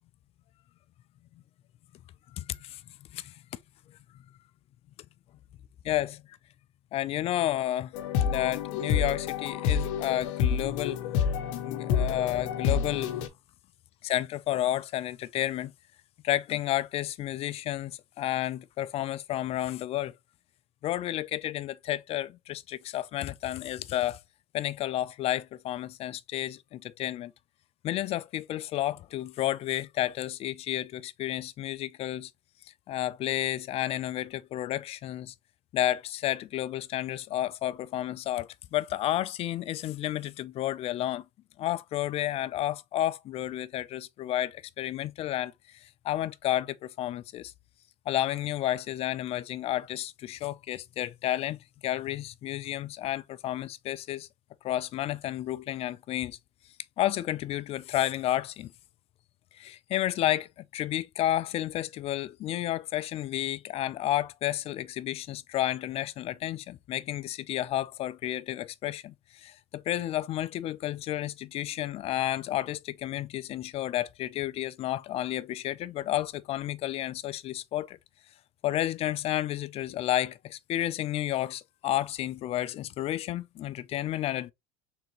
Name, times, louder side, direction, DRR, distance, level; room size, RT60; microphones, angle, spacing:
voice 1, 2.3-2.8 3.1-3.3 5.8-6.2 6.9-7.9 8.2-11.0 11.6-13.2 14.0-15.7 16.2-20.1 20.8-24.2 24.5-27.3 27.8-32.3 32.9-35.3 35.7-41.3 41.6-45.5 45.8-47.5 48.1-54.3 54.6-56.4 57.0-58.7 59.6-78.0 78.6-84.5, left 13 dB, 40° left, 0.4 m, -31 dB
sound 1, 7.9-13.3, left 7 dB, 75° left, 0.7 m, -28 dB
3.7 x 3.5 x 2.9 m
supercardioid pair, 110°, 16 cm